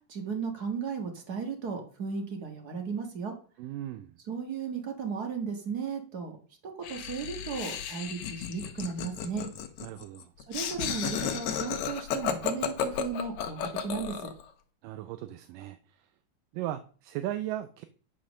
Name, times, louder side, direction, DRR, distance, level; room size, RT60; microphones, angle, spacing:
voice 1, 0.1-3.3 4.3-6.3 6.6-9.4 10.5-14.3, right 5 dB, 45° right, 1.4 m, -35 dB
voice 2, 3.6-4.2 9.8-10.3 14.8-16.0 16.5-17.9, right 13 dB, 85° right, 2.3 m, -37 dB
Laughter, 6.8-14.4, left 8 dB, 65° left, 2.0 m, -33 dB
10.0 x 5.3 x 6.2 m
omnidirectional pair, 3.8 m